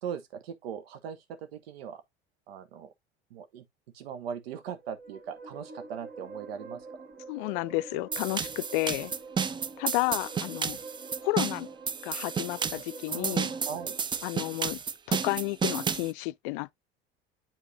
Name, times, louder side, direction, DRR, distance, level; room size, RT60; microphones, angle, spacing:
voice 1, 0.0-2.0 2.5-2.9 3.3-3.6 3.9-6.9 13.1-13.9, right 8 dB, 70° right, 0.9 m, -39 dB
sound 1, 4.6-14.0, right 3 dB, 30° right, 1.7 m, -46 dB
voice 2, 7.3-9.1 9.8-10.8 11.2-11.7 12.0-13.5 14.2-14.8 15.1-16.7, left 21 dB, 55° left, 0.5 m, -31 dB
sound 2, 8.1-16.1, right 6 dB, 15° right, 0.4 m, -32 dB
8.9 x 4.7 x 2.7 m
figure-of-eight pair, 70°, 32 cm